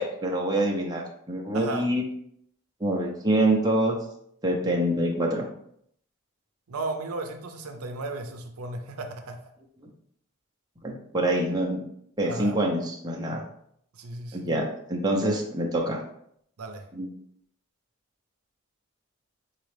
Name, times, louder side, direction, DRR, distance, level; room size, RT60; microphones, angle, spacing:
voice 1, 0.0-2.0 2.8-4.0 4.4-5.5 10.8-11.8 12.2-13.4 14.3-16.0 16.9-17.1, right 1 dB, 20° right, -1 dB, 0.7 m, -26 dB
voice 2, 1.5-1.9 6.7-9.4 12.2-12.6 14.0-14.5 16.6-16.9, right 2 dB, 80° right, 6 dB, 0.6 m, -35 dB
4.2 x 3.7 x 3.3 m, 0.69 s
head